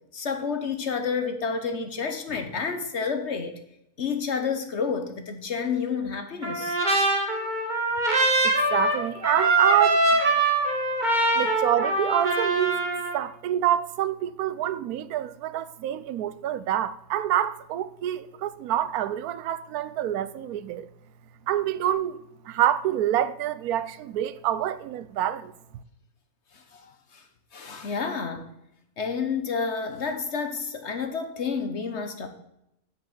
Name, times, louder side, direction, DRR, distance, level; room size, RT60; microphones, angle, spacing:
voice 1, 0.1-3.5 4.0-6.8 26.5-27.2 27.5-28.5 29.0-32.3, left 5 dB, 55° left, 1.2 m, -30 dB
Trumpet, 6.4-13.2, right 2 dB, 30° right, 1.8 m, -23 dB
voice 2, 8.4-10.2 11.3-12.8 13.1-20.9 21.5-22.2 22.5-25.5, right 11 dB, 85° right, 1.1 m, -27 dB
7.7 x 6.8 x 7.3 m
omnidirectional pair, 1.5 m